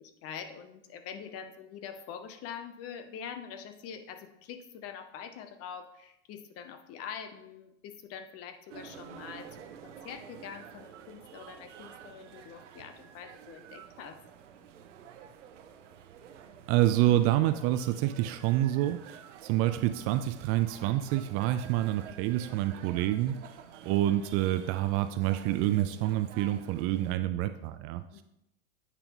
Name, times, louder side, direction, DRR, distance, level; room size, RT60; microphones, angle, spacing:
voice 1, 0.0-14.2 28.1-28.2, left 7 dB, 40° left, 8 dB, 0.8 m, -44 dB
sound 1, 8.7-27.2, right 8 dB, 90° right, 0.7 m, -50 dB
voice 2, 16.7-23.6 23.8-28.0, right 14 dB, 40° right, 11 dB, 0.4 m, -27 dB
8.3 x 5.2 x 3.0 m, 0.82 s
hypercardioid pair, 115°, 35 cm